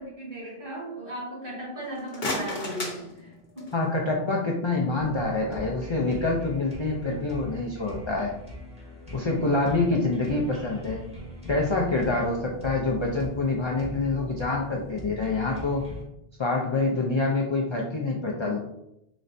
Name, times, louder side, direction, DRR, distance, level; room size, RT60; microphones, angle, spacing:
voice 1, 0.0-3.8, right 1 dB, 60° right, -6 dB, 1.9 m, -37 dB
sound 1, 1.8-3.9, left 2 dB, 70° left, 1.1 m, -34 dB
voice 2, 3.7-8.3 9.1-11.0 11.5-15.8 16.4-18.6, left 3 dB, 50° left, -1 dB, 0.3 m, -26 dB
sound 2, 5.0-16.0, equal, 5° right, 0.8 m, -41 dB
4.0 x 3.2 x 2.6 m, 0.83 s
omnidirectional pair, 1.0 m